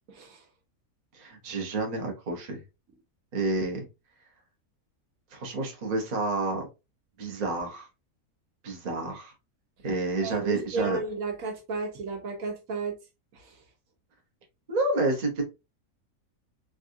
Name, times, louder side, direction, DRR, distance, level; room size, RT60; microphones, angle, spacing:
voice 1, 0.1-0.4 10.2-13.0 13.3-13.5, right 3 dB, 70° right, 1.2 m, -34 dB
voice 2, 1.1-2.6 3.3-3.8 5.3-6.7 7.2-7.9 8.6-9.3 9.8-11.0 14.7-15.4, right 2 dB, 35° right, 0.8 m, -29 dB
3.6 x 2.4 x 2.6 m
omnidirectional pair, 1.6 m